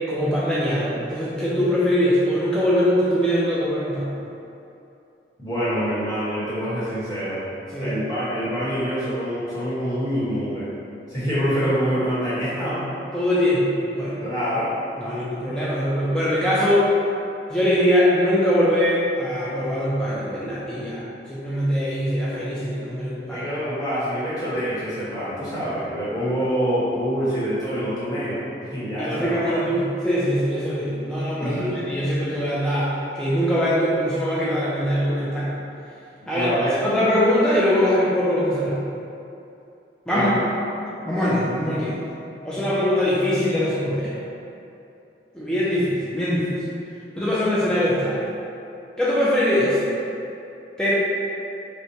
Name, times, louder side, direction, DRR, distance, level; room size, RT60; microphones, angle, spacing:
voice 1, 0.1-4.1 7.7-8.0 13.1-14.2 15.0-16.9 17.5-21.0 21.3-23.5 29.0-31.5 31.9-35.5 36.3-36.5 36.8-38.8 40.1-40.3 41.1-42.0 42.4-44.1 45.3-46.6 47.2-48.3 49.0-49.8 50.8-50.9, equal, 5° left, -9 dB, 0.4 m, -22 dB
voice 2, 5.4-7.5 7.8-10.7 11.1-12.8 14.2-14.7 23.3-28.4 28.7-29.6 31.4-31.7 36.3-36.7 40.1-40.4, equal, 20° left, -12 dB, 1.1 m, -26 dB
4.4 x 2.1 x 2.7 m, 2.7 s
head